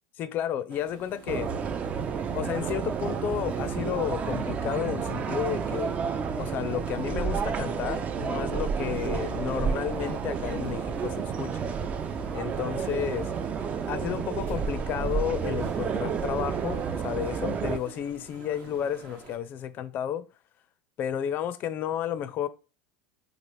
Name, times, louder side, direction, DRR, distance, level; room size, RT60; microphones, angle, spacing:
voice 1, 0.2-1.5 2.3-5.9 6.4-11.6 12.3-13.3 13.9-20.2 21.0-22.5, left 10 dB, 45° left, 0.4 m, -32 dB
sound 1, 0.7-19.4, right 5 dB, 55° right, 0.8 m, -48 dB
sound 2, 1.3-17.8, right 6 dB, 30° right, 0.3 m, -30 dB
3.0 x 2.4 x 3.1 m
supercardioid pair, 100°, 4 cm